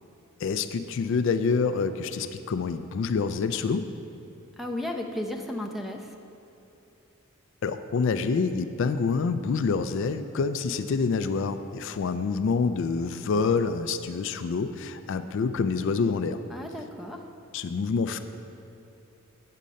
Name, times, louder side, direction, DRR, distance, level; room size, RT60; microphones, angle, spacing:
voice 1, 0.4-3.9 7.6-16.4 17.5-18.2, left 5 dB, 60° left, 10 dB, 0.3 m, -27 dB
voice 2, 4.6-6.1 16.5-17.2, left 1 dB, ahead, 2 dB, 0.5 m, -34 dB
8.5 x 6.6 x 5.2 m, 2.8 s
head